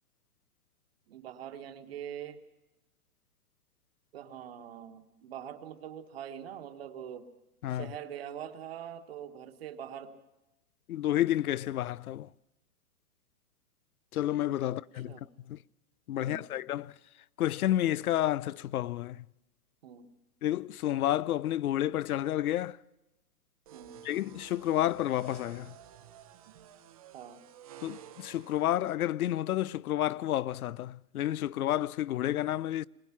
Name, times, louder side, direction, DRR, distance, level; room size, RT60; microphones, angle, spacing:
voice 1, 1.1-2.4 4.1-7.3 7.7-10.2 14.6-14.7 15.1-15.3 16.2-16.5 19.8-20.1 23.7-24.0 27.1-27.4, right 9 dB, 40° right, 1.6 m, -43 dB
voice 2, 10.9-12.3 14.1-15.6 16.1-17.0 17.4-19.3 20.4-22.8 24.0-25.8 27.8-32.9, left 13 dB, 70° left, 0.6 m, -30 dB
sound 1, 23.7-28.7, right 10 dB, 25° right, 0.9 m, -52 dB
22.0 x 19.5 x 5.9 m
hypercardioid pair, 175°, 45 cm